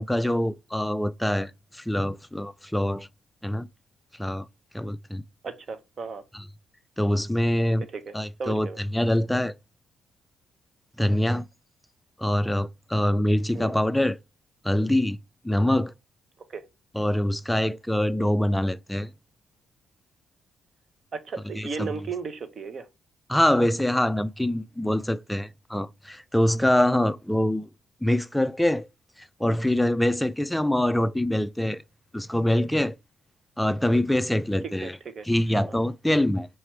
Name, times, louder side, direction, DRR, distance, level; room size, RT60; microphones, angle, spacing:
voice 1, 0.0-3.1 3.4-3.7 4.2-4.5 4.7-5.2 6.3-6.4 7.0-7.9 8.1-9.5 11.0-11.5 12.2-14.2 14.6-15.2 15.4-15.9 16.9-19.1 21.6-21.9 23.3-27.7 28.0-28.9 29.2-31.8 32.1-33.0 33.6-35.0 35.3-36.5, left 1 dB, 5° left, 0.3 m, -24 dB
voice 2, 5.4-6.2 7.9-8.1 8.4-8.8 13.5-13.7 16.5-16.6 21.1-22.9 34.8-35.3 35.5-35.6, right 5 dB, 50° right, 0.9 m, -35 dB
4.8 x 3.0 x 3.2 m
cardioid pair, 90°, 0 cm